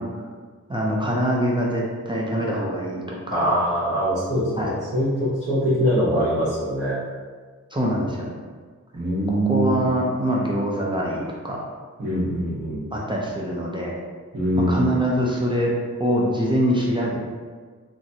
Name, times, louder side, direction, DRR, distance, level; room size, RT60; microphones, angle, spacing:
voice 1, 0.7-3.6 4.6-4.8 7.7-8.3 9.3-11.6 12.9-13.9 14.6-15.7 16.0-17.3, equal, 15° right, -4 dB, 0.3 m, -24 dB
voice 2, 3.3-7.0 8.9-9.8 12.0-12.9 14.3-15.0, equal, 45° right, -12 dB, 1.0 m, -23 dB
3.0 x 2.6 x 2.7 m, 1.6 s
wide cardioid pair, 155°, 30 cm